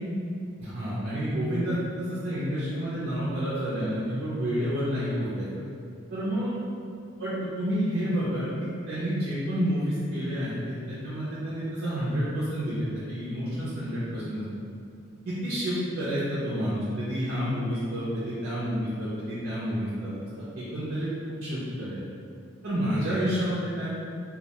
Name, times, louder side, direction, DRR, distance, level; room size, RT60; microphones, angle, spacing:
voice 1, 0.6-5.5 6.1-6.5 7.2-14.4 15.3-20.1 20.5-22.0 22.6-23.9, equal, 50° right, -10 dB, 0.4 m, -29 dB
2.2 x 2.1 x 2.7 m, 2.4 s
head